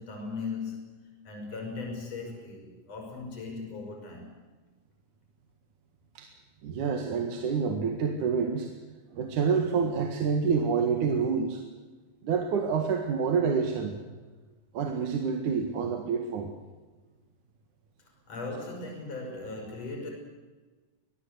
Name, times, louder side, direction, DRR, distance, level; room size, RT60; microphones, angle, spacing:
voice 1, 0.0-4.4 18.0-20.1, left 3 dB, 50° left, 2 dB, 6.5 m, -38 dB
voice 2, 6.6-8.7 9.1-11.6 12.2-13.9 14.7-16.5, right 6 dB, 75° right, 4 dB, 3.2 m, -27 dB
24.0 x 18.5 x 8.1 m, 1.3 s
omnidirectional pair, 3.6 m